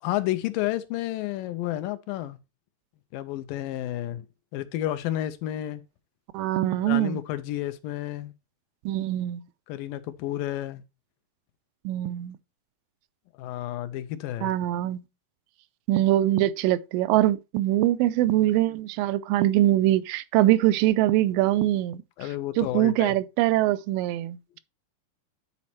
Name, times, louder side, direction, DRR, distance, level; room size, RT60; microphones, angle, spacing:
voice 1, 0.0-2.4 3.1-4.3 4.5-5.8 6.8-8.3 9.7-10.8 13.4-14.5 22.2-23.2, left 14 dB, 85° left, 2.3 m, -31 dB
voice 2, 6.3-7.2 8.9-9.4 11.9-12.4 14.4-15.0 15.9-22.0 22.6-24.6, right 14 dB, 85° right, 2.2 m, -23 dB
9.8 x 4.2 x 4.3 m
omnidirectional pair, 4.0 m